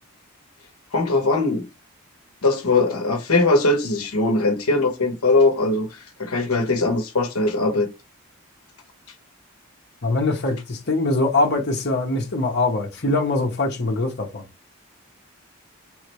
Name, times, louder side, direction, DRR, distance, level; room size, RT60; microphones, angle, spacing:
voice 1, 0.9-1.7 2.4-7.9, left 2 dB, 85° left, 0.9 m, -20 dB
voice 2, 10.0-14.4, left 2 dB, 50° left, 1.0 m, -22 dB
3.5 x 3.3 x 3.1 m
head